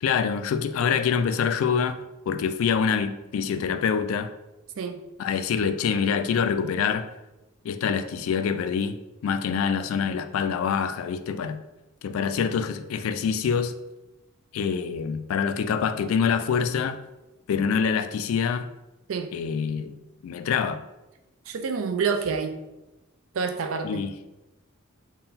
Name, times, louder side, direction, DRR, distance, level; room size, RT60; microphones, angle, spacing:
voice 1, 0.0-2.0 2.3-4.3 5.2-7.1 7.6-9.0 9.2-11.6 12.0-13.7 14.5-17.0 17.5-18.7 19.3-20.0 20.2-20.8 23.8-24.1, left 6 dB, 75° left, 11 dB, 0.3 m, -25 dB
voice 2, 21.5-22.6 23.3-24.1, right 5 dB, 70° right, 6 dB, 0.4 m, -28 dB
3.7 x 2.2 x 4.0 m, 0.99 s
head